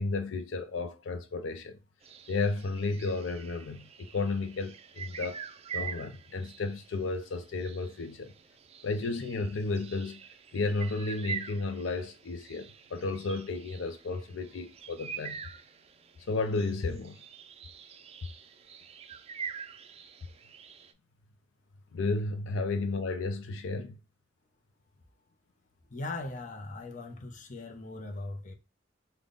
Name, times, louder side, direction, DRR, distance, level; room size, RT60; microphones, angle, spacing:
voice 1, 0.0-1.8 2.3-5.5 5.7-8.3 8.8-10.2 10.5-15.4 16.3-17.2 21.9-24.0, left 3 dB, 85° left, 0.5 m, -33 dB
sound 1, 2.0-20.9, right 7 dB, 35° right, 0.3 m, -45 dB
voice 2, 25.9-28.5, left 2 dB, 40° left, 0.7 m, -39 dB
3.5 x 2.2 x 3.7 m
head